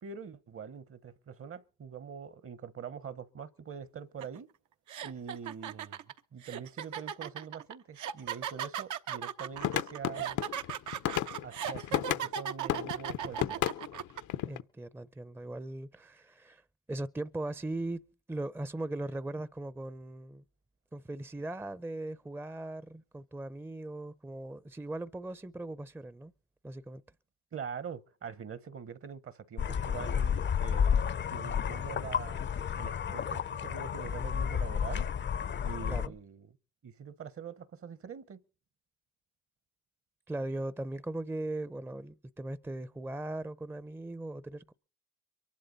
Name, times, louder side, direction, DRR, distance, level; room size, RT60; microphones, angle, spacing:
voice 1, 0.0-4.5 5.0-6.0 6.3-10.4 11.4-13.7 27.5-32.5 32.7-35.0 35.6-36.5 36.8-38.4, right 7 dB, 45° right, 1.1 m, -44 dB
sound 1, 4.2-4.4 4.9-14.2, right 9 dB, 75° right, 1.0 m, -37 dB
sound 2, 9.6-12.3 12.7-14.6, left 12 dB, 75° left, 0.8 m, -33 dB
voice 2, 14.5-16.6 16.9-18.0 18.3-20.4 20.9-26.3 26.6-27.0 35.9-36.2 40.3-44.7, right 2 dB, 5° right, 0.6 m, -39 dB
sound 3, 29.6-36.1, left 7 dB, 40° left, 0.6 m, -31 dB
23.5 x 11.5 x 4.1 m
cardioid pair, 90°, 30 cm